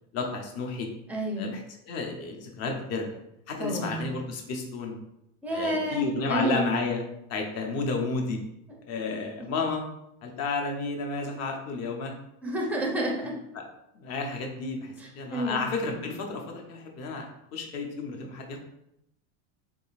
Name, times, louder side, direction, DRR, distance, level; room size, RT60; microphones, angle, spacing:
voice 1, 0.1-0.9 1.4-3.1 3.5-5.0 5.5-7.0 7.3-8.4 8.9-9.8 10.2-12.1 13.2-13.3 13.9-17.3 17.5-18.6, left 4 dB, 40° left, 2 dB, 0.7 m, -32 dB
voice 2, 1.1-1.5 3.6-4.1 5.4-6.8 11.2-11.3 12.4-13.4 15.0-15.6, right 1 dB, 5° right, -1 dB, 0.4 m, -30 dB
3.8 x 3.3 x 2.4 m, 0.81 s
supercardioid pair, 140°, 40 cm